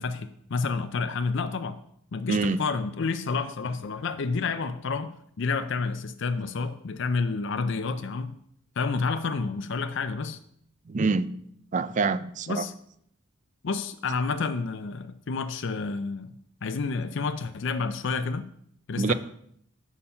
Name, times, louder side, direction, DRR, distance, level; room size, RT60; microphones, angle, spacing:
voice 1, 0.0-1.8 2.1-8.3 8.8-10.4 12.5-12.7 13.6-16.3 16.6-18.5 18.9-19.1, left 4 dB, 60° left, 0.5 m, -29 dB
voice 2, 10.9-11.3 11.7-12.6 19.0-19.1, right 4 dB, 40° right, 0.4 m, -25 dB
7.0 x 6.5 x 5.6 m
head